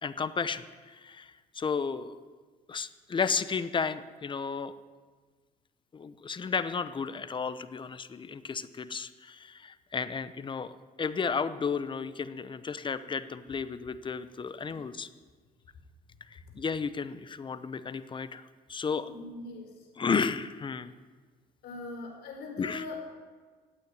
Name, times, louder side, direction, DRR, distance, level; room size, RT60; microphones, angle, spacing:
voice 1, 0.0-2.2 2.7-4.7 5.9-10.7 11.0-15.1 16.3-18.4 18.7-19.1 20.0-20.9 22.6-22.8, left 5 dB, 30° left, 14 dB, 0.9 m, -33 dB
voice 2, 19.0-19.9 21.6-23.1, left 3 dB, 75° left, 2 dB, 4.7 m, -41 dB
16.0 x 9.0 x 9.6 m, 1.4 s
cardioid pair, 110°, 17 cm